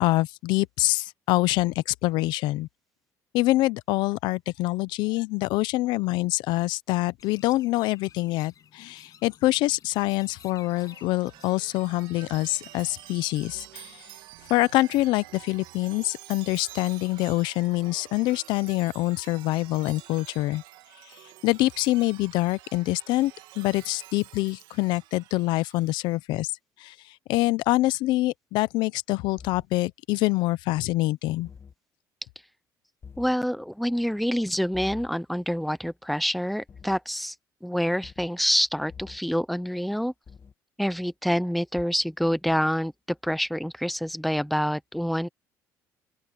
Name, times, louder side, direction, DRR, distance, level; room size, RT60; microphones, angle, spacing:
voice 1, 0.0-2.7 3.3-14.0 14.5-20.6 21.4-26.5 26.8-26.9 27.3-31.5, left 19 dB, 80° left, 0.7 m, -25 dB
Chirp tweet, 7.2-14.0, left 9 dB, 50° left, 8.0 m, -54 dB
Chime, 10.3-26.1, right 15 dB, 80° right, 2.7 m, -48 dB
sound 1, 29.4-29.7 31.4-31.7 33.0-33.3 34.7-35.1 36.7-37.0 38.0-38.3 38.9-39.2 40.3-40.5 41.8-41.9, left 6 dB, 35° left, 2.7 m, -45 dB
voice 2, 33.2-37.3 37.6-40.1 40.8-42.9 43.2-45.3, equal, ahead, 0.9 m, -27 dB
open air
cardioid pair, 105°, 8 cm